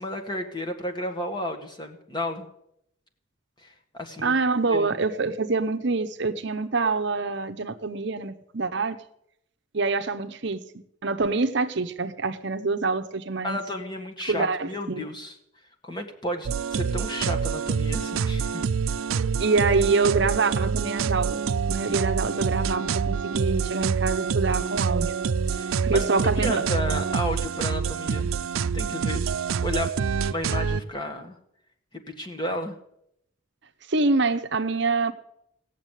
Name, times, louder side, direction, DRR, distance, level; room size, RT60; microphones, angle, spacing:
voice 1, 0.0-2.4 3.6-4.3 4.7-5.0 13.4-15.3 15.8-18.6 25.5-28.3 28.7-29.3 29.6-29.9 30.3-31.3 32.1-32.7, left 1 dB, 20° left, 4 dB, 1.7 m, -32 dB
voice 2, 4.2-9.0 9.7-10.6 11.0-13.6 14.3-15.0 19.4-21.4 21.7-25.1 25.8-26.6 33.9-35.1, right 3 dB, 55° right, 8 dB, 0.8 m, -25 dB
sound 1, 16.4-30.8, right 6 dB, 80° right, 0.4 m, -26 dB
17.0 x 7.3 x 9.2 m, 0.76 s
head